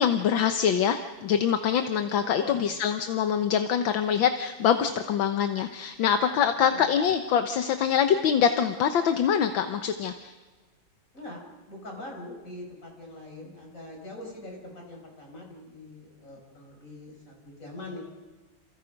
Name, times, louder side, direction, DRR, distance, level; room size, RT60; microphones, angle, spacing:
voice 1, 0.0-10.3, left 8 dB, 75° left, 7 dB, 1.8 m, -24 dB
voice 2, 11.1-18.0, left 1 dB, 40° left, 0 dB, 6.5 m, -43 dB
29.0 x 28.5 x 5.3 m, 1.3 s
omnidirectional pair, 2.2 m